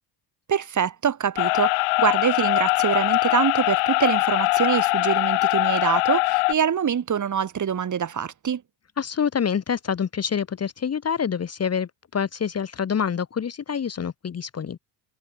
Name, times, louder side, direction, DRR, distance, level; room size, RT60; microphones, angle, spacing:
voice 1, 0.5-8.6, right 8 dB, 35° right, 2.9 m, -25 dB
sound 1, 1.4-6.5, left 31 dB, 80° left, 1.5 m, -22 dB
voice 2, 9.0-14.8, left 7 dB, 30° left, 1.6 m, -26 dB
supercardioid pair, 100°, 50 cm